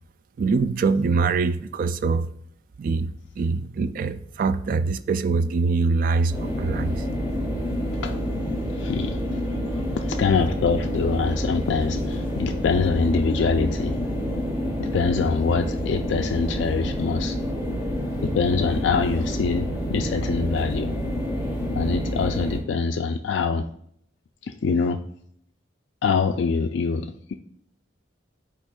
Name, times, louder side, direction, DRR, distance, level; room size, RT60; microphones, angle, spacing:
voice 1, 0.4-2.3 2.8-7.0, right 4 dB, 45° right, 0.3 m, -23 dB
sound 1, 6.3-22.6, equal, 15° right, 1.4 m, -28 dB
voice 2, 8.7-9.2 10.0-14.0 14.8-17.4 18.2-20.9 21.7-23.6 24.5-25.0 26.0-27.3, left 5 dB, 65° left, 0.3 m, -24 dB
9.8 x 4.4 x 2.3 m
head